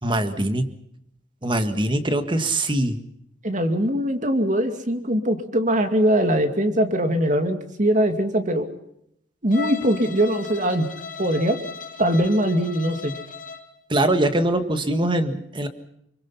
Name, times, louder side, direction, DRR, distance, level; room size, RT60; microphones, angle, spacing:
voice 1, 0.0-0.7 1.4-3.1 13.9-15.7, right 1 dB, 25° right, 8 dB, 1.7 m, -22 dB
voice 2, 3.4-8.7 9.4-10.9 11.2-11.6 12.0-13.1, equal, 45° right, 7 dB, 2.4 m, -21 dB
Bowed string instrument, 9.5-13.7, left 5 dB, 50° left, 2.3 m, -36 dB
26.0 x 23.5 x 5.7 m, 0.76 s
head